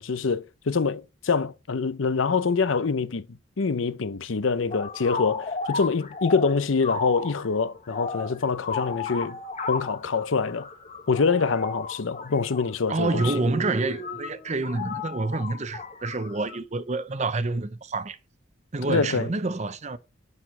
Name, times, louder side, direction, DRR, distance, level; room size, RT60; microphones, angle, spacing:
voice 1, 0.0-3.2 3.6-9.4 9.7-10.7 11.1-13.3 18.9-19.3, left 4 dB, 80° left, 0.7 m, -25 dB
sound 1, 4.7-16.6, left 4 dB, 35° left, 1.4 m, -35 dB
voice 2, 12.9-18.2 18.7-20.0, right 2 dB, 35° right, 0.7 m, -28 dB
7.4 x 6.2 x 5.9 m
head